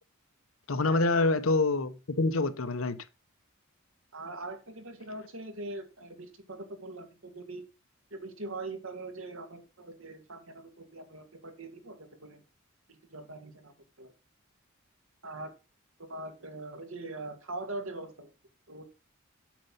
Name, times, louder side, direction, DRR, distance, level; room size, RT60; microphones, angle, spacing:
voice 1, 0.7-3.0, left 3 dB, 80° left, 0.9 m, -26 dB
voice 2, 4.1-7.6 8.1-12.4 12.9-13.7 14.0-14.1 15.2-15.5 16.0-18.3 18.7-18.9, right 2 dB, 80° right, 2.3 m, -42 dB
7.5 x 6.7 x 5.5 m
head